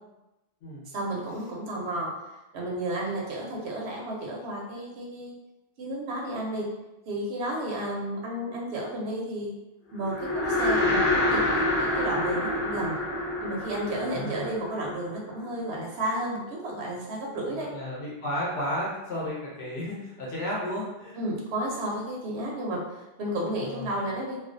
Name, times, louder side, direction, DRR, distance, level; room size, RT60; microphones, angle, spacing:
voice 1, 0.9-2.3 2.5-5.3 5.8-6.7 7.1-9.5 9.9-13.0 13.4-17.7 21.2-24.4, right 1 dB, 80° right, -2 dB, 0.8 m, -32 dB
sound 1, 10.0-15.4, left 1 dB, 15° left, 0.5 m, -27 dB
voice 2, 14.0-14.5 17.5-21.2 23.6-23.9, equal, 75° left, -5 dB, 0.9 m, -33 dB
2.4 x 2.1 x 2.5 m, 1.0 s
omnidirectional pair, 1.1 m